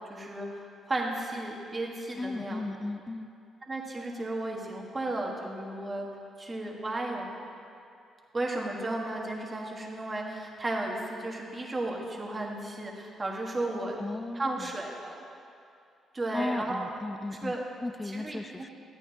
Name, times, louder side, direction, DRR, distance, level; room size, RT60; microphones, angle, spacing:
voice 1, 0.1-2.7 3.7-6.1 6.4-7.3 8.3-14.0 14.3-15.2 16.1-16.8 17.4-17.6 18.1-18.7, right 2 dB, 25° right, -1 dB, 1.5 m, -34 dB
voice 2, 2.2-3.3 14.0-14.8 16.3-17.6 17.8-18.7, left 2 dB, 20° left, 11 dB, 0.4 m, -35 dB
13.0 x 9.2 x 2.8 m, 2.5 s
cardioid pair, 90°, 0 cm